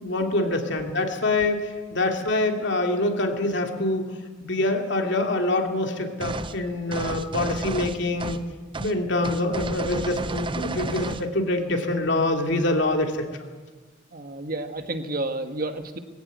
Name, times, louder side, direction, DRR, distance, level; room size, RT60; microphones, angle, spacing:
voice 1, 0.0-4.0 4.4-8.4 8.8-13.2, left 2 dB, 65° left, 3 dB, 3.0 m, -25 dB
sound 1, 6.2-6.6 6.9-8.5 8.7-8.9 9.2-11.3, right 3 dB, 25° right, 0.7 m, -32 dB
voice 2, 14.1-16.0, right 2 dB, 50° right, 7 dB, 1.6 m, -30 dB
20.5 x 16.0 x 9.5 m, 1.3 s
head